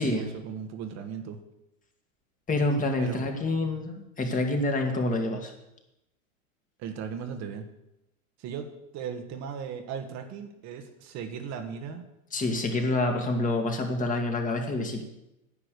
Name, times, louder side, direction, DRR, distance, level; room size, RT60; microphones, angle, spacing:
voice 1, 0.0-1.4 3.0-3.3 6.8-7.7 8.4-12.0, right 7 dB, 40° right, 6 dB, 1.5 m, -37 dB
voice 2, 2.5-5.5 12.3-15.0, left 2 dB, 20° left, 3 dB, 2.0 m, -27 dB
10.0 x 8.7 x 6.7 m, 0.89 s
hypercardioid pair, 120°, 40 cm